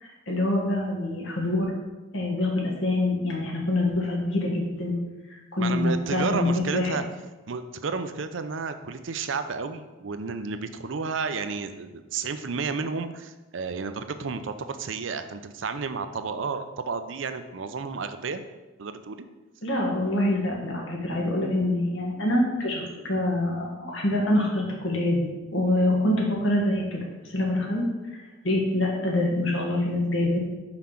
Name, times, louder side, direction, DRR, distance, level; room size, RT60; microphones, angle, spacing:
voice 1, 0.0-1.7 2.1-5.0 5.3-6.9 19.6-27.0 27.3-27.8 28.4-30.4, left 1 dB, 80° left, -2 dB, 1.9 m, -25 dB
voice 2, 5.6-7.0 7.5-18.4 18.8-19.3, right 4 dB, 75° right, 9 dB, 0.6 m, -32 dB
5.7 x 4.9 x 5.8 m, 1.1 s
head